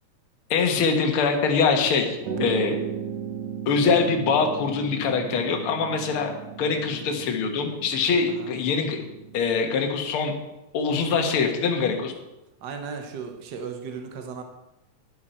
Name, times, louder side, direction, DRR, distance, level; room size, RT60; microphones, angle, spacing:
voice 1, 0.5-2.8 3.7-6.3 6.6-9.0 9.3-10.3 10.7-12.1, left 5 dB, 55° left, 3 dB, 1.9 m, -23 dB
sound 1, 2.2-9.9, right 7 dB, 60° right, 2.3 m, -36 dB
voice 2, 12.6-14.4, right 5 dB, 80° right, 4 dB, 0.9 m, -36 dB
11.0 x 11.0 x 4.5 m, 0.96 s
omnidirectional pair, 3.5 m